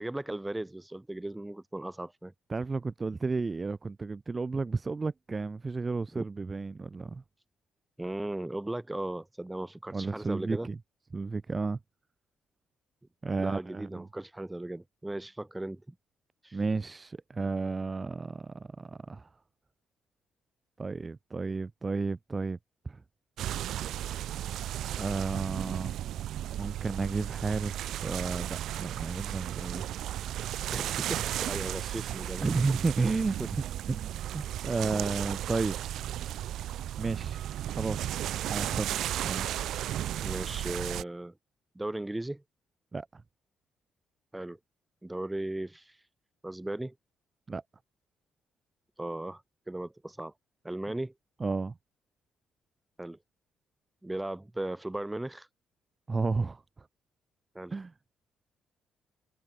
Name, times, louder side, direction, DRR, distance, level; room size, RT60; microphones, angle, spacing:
voice 1, 0.0-2.3 6.1-6.2 8.0-10.7 13.4-15.9 16.4-16.6 30.7-32.5 40.2-41.3 41.7-42.4 44.3-44.6 45.0-46.1 46.4-46.9 49.0-50.3 50.6-51.1 53.0-53.2 54.0-55.5 57.5-57.8, right 1 dB, 10° right, 6.6 m, -37 dB
voice 2, 2.5-7.2 9.9-10.8 11.1-11.8 13.2-14.1 16.5-19.3 20.8-22.6 22.8-23.0 24.8-25.9 26.6-30.2 32.4-36.1 37.0-37.4 37.7-38.2 38.5-38.9 39.2-39.5 42.9-43.2 47.5-47.6 51.4-51.8 56.1-56.9 57.7-57.9, right 4 dB, 25° right, 1.0 m, -32 dB
sound 1, 23.4-41.0, right 12 dB, 75° right, 1.2 m, -34 dB
open air
cardioid pair, 90°, 0 cm